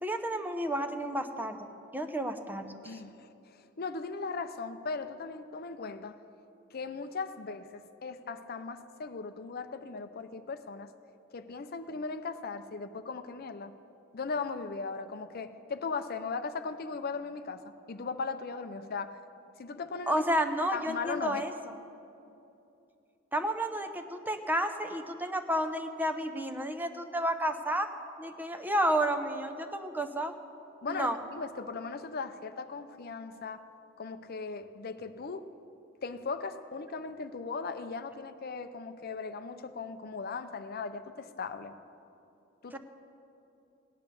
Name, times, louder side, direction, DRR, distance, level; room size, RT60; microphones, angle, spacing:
voice 1, 0.0-1.7 1.9-3.0 20.1-21.5 23.3-27.9 28.2-30.3 30.9-31.2 42.7-42.8, right 1 dB, 10° right, 7 dB, 0.7 m, -31 dB
voice 2, 2.8-6.2 6.7-10.9 11.3-13.7 14.1-19.2 19.6-20.2 20.7-21.4 30.8-33.6 34.0-35.5 36.0-41.7 42.6-42.8, left 4 dB, 50° left, 9 dB, 0.6 m, -38 dB
17.0 x 10.0 x 6.9 m, 2.8 s
head